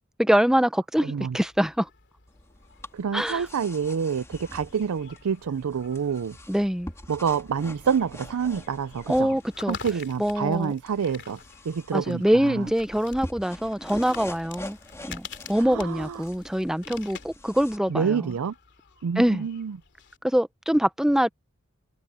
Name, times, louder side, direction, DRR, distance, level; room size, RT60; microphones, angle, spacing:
voice 1, 0.2-1.9 3.1-3.5 6.5-6.9 9.1-9.8 10.2-10.7 11.9-14.8 15.0-18.3 19.2-19.5 20.2-21.3, equal, ahead, 0.6 m, -24 dB
voice 2, 1.0-1.4 2.9-6.4 7.1-9.4 9.7-11.4 11.6-12.7 15.6-16.2 17.9-18.5 19.0-19.8, right 6 dB, 70° right, 0.4 m, -27 dB
sound 1, 1.2-20.2, left 7 dB, 55° left, 2.7 m, -48 dB
sound 2, 2.3-17.8, left 1 dB, 15° left, 2.7 m, -45 dB
head